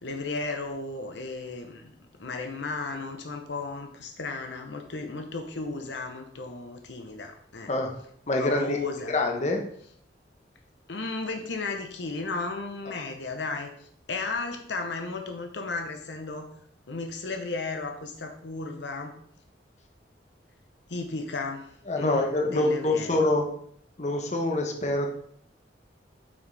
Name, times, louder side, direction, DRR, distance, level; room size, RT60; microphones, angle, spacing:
voice 1, 0.0-1.9 2.2-7.7 8.4-9.1 10.9-16.5 16.9-19.2 20.9-23.3, left 3 dB, 75° left, 4 dB, 0.8 m, -34 dB
voice 2, 8.3-8.8 9.1-9.6 21.9-23.5 24.0-25.1, left 2 dB, 40° left, 2 dB, 1.1 m, -25 dB
8.0 x 6.1 x 3.4 m, 0.65 s
head